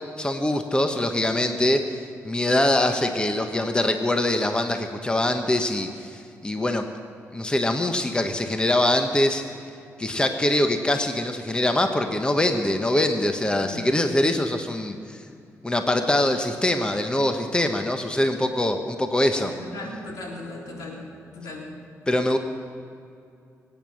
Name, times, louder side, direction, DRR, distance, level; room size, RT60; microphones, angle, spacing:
voice 1, 0.2-1.8 2.2-6.8 7.3-9.4 10.0-15.0 15.6-19.5 22.1-22.4, left 1 dB, 15° left, 6 dB, 1.2 m, -23 dB
voice 2, 19.3-21.1 21.3-21.7, left 2 dB, 80° left, -1 dB, 3.7 m, -37 dB
24.0 x 9.1 x 6.4 m, 2.5 s
cardioid pair, 85°, 6 cm